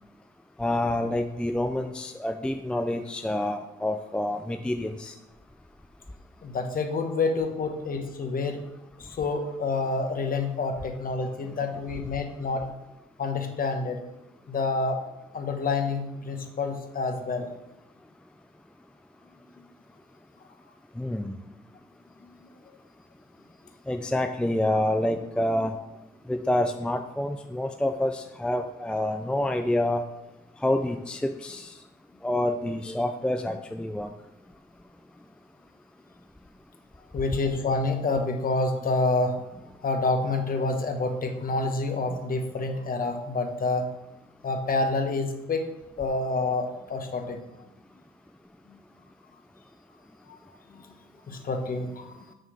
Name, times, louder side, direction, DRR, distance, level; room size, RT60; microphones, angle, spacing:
voice 1, 0.6-5.1 21.0-21.3 23.9-25.8 26.3-30.0 30.6-31.8 32.2-34.1 42.1-42.2, left 1 dB, 5° left, 6 dB, 0.5 m, -27 dB
voice 2, 6.4-8.6 9.0-12.6 13.2-14.0 14.5-15.0 15.3-17.5 22.2-22.4 37.1-39.4 39.8-43.9 44.4-45.7 46.0-47.4 48.7-48.8 50.3-50.4 50.7-50.9 51.3-52.3, left 3 dB, 45° left, 5 dB, 1.2 m, -28 dB
6.4 x 4.5 x 6.4 m, 0.96 s
cardioid pair, 90°, 20 cm